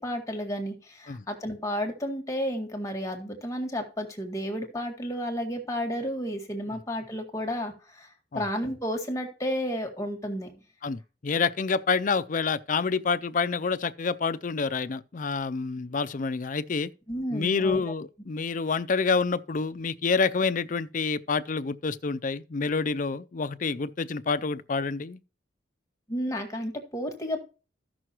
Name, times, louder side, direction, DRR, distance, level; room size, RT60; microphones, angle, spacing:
voice 1, 0.0-10.5 17.1-17.8 26.1-27.4, equal, 15° left, 1.8 m, -32 dB
voice 2, 10.8-16.9 17.3-25.2, left 4 dB, 40° left, 0.4 m, -28 dB
14.5 x 6.2 x 3.0 m
head